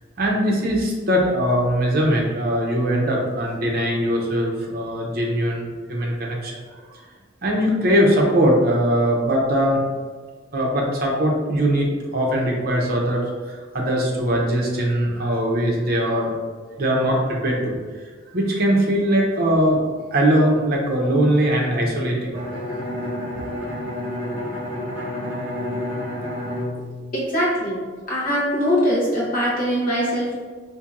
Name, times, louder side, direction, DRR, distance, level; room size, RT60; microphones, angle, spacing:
voice 1, 0.2-6.5 6.9-7.0 7.4-9.8 10.5-16.4 16.8-17.8 18.3-19.8 20.1-22.6 23.4-23.5, equal, 50° right, -2 dB, 0.7 m, -21 dB
Bowed string instrument, 22.3-28.0, left 1 dB, 10° right, 1.1 m, -30 dB
voice 2, 27.1-27.8 28.1-30.4, equal, 45° left, -6 dB, 0.9 m, -22 dB
4.3 x 2.6 x 2.5 m, 1.5 s
head